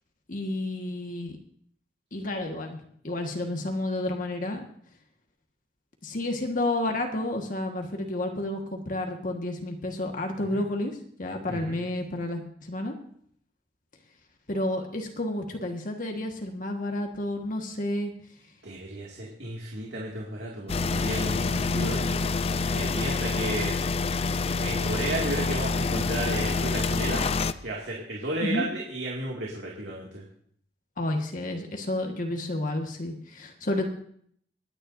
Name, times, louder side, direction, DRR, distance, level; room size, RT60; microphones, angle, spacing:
voice 1, 0.3-1.4 2.1-4.6 6.0-12.9 14.5-18.1 21.4-21.9 28.4-28.7 31.0-33.9, left 1 dB, 50° left, 3 dB, 1.5 m, -31 dB
voice 2, 11.5-11.8 18.6-22.2 22.7-23.8 24.6-27.2 27.6-30.3, right 2 dB, 85° right, -2 dB, 2.2 m, -33 dB
sound 1, 20.7-27.5, left 4 dB, 35° left, 0.5 m, -27 dB
25.5 x 10.0 x 2.6 m, 0.62 s
head